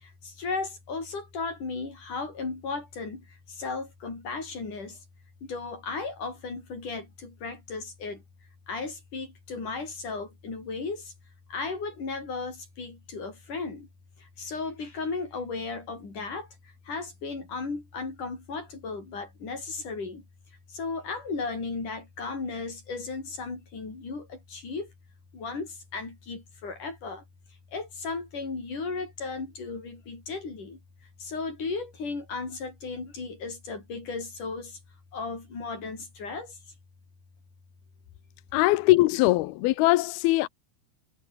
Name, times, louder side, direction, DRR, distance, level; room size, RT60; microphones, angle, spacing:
voice 1, 0.0-5.0 5.4-8.2 8.7-11.1 11.5-13.9 14.4-16.5 16.9-20.2 20.7-24.9 25.3-27.2 27.7-30.8 31.2-34.8 35.1-36.6, left 4 dB, 45° left, 8.3 m, -35 dB
voice 2, 38.5-40.5, left 18 dB, 80° left, 2.3 m, -21 dB
omnidirectional pair, 5.2 m